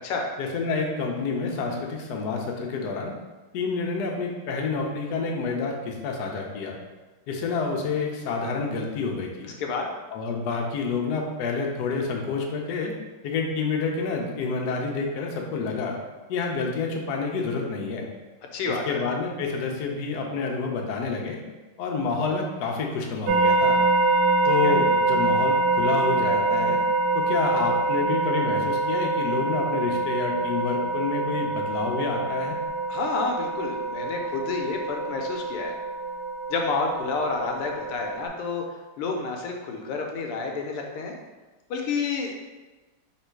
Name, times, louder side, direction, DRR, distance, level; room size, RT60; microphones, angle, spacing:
voice 1, 0.4-3.1 3.5-6.8 7.3-9.5 10.1-13.0 13.2-16.0 16.3-18.1 18.9-21.4 21.8-23.8 24.5-26.8 27.1-32.6, left 4 dB, 70° left, 0 dB, 0.9 m, -28 dB
voice 2, 9.4-9.9 18.5-19.0 24.6-24.7 32.9-35.7 36.5-38.6 39.0-41.1 41.7-42.3, left 4 dB, 85° left, 2 dB, 1.6 m, -29 dB
sound 1, 23.3-38.3, right 2 dB, 75° right, 1.2 m, -25 dB
3.5 x 3.0 x 4.5 m, 1.2 s
omnidirectional pair, 2.4 m